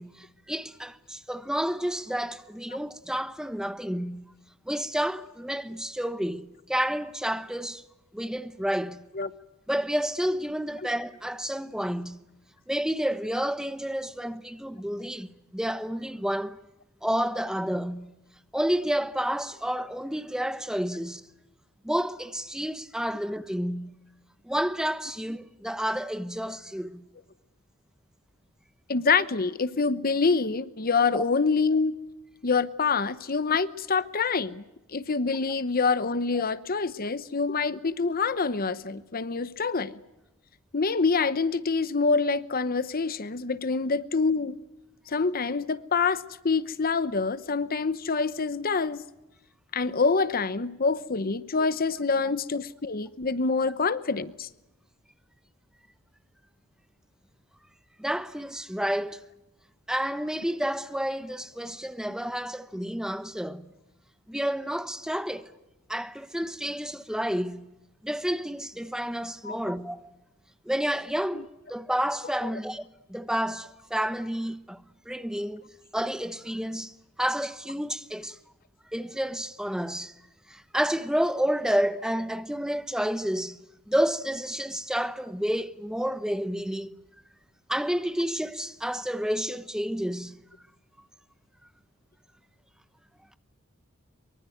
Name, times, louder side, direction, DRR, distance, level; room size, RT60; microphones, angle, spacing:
voice 1, 0.0-4.3 4.7-7.8 8.1-9.0 9.7-12.2 12.7-16.6 17.0-18.1 18.5-21.2 21.8-24.0 24.4-27.0 31.1-31.2 36.3-36.4 58.0-59.2 59.9-63.7 64.3-65.5 65.9-67.7 68.0-70.0 70.6-75.6 75.9-78.4 78.9-80.1 80.5-83.6 83.9-86.9 87.7-90.4, equal, 5° right, 1.0 m, -30 dB
voice 2, 28.9-32.0 32.4-34.6 34.9-40.0 40.7-44.6 45.1-49.0 49.7-54.5 69.4-69.6 71.3-71.4, left 4 dB, 45° left, 0.9 m, -26 dB
24.0 x 24.0 x 9.3 m
head